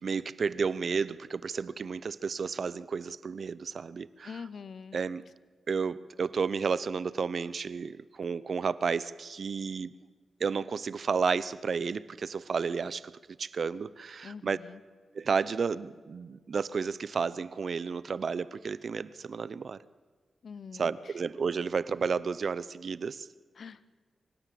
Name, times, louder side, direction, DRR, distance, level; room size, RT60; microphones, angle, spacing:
voice 1, 0.0-4.4 4.9-5.2 5.7-9.9 10.4-13.1 13.4-14.6 15.1-19.8 20.7-23.3, right 5 dB, 55° right, 18 dB, 0.6 m, -32 dB
voice 2, 4.2-5.0 14.2-14.8 20.4-21.1 23.6-24.0, left 6 dB, 60° left, 17 dB, 0.7 m, -44 dB
24.5 x 17.0 x 7.7 m, 1.5 s
wide cardioid pair, 110°, 0 cm